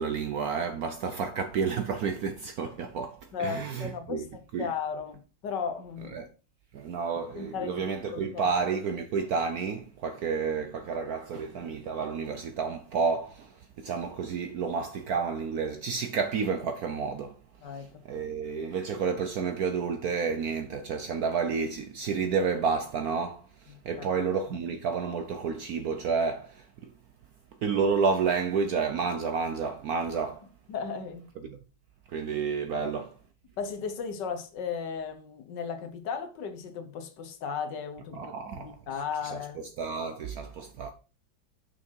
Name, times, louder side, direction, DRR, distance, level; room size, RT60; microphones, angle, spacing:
voice 1, 0.0-4.2 4.5-4.7 6.1-6.3 6.7-17.4 17.8-26.9 27.6-30.5 31.4-31.6 32.1-33.1 38.1-38.8 39.2-40.9, right 5 dB, 65° right, 0.9 m, -30 dB
voice 2, 3.3-6.2 7.3-7.9 8.1-8.6 17.6-17.9 23.7-24.2 30.7-31.3 32.7-32.9 33.6-39.6, left 6 dB, 65° left, 1.5 m, -36 dB
6.4 x 5.9 x 4.5 m
omnidirectional pair, 2.2 m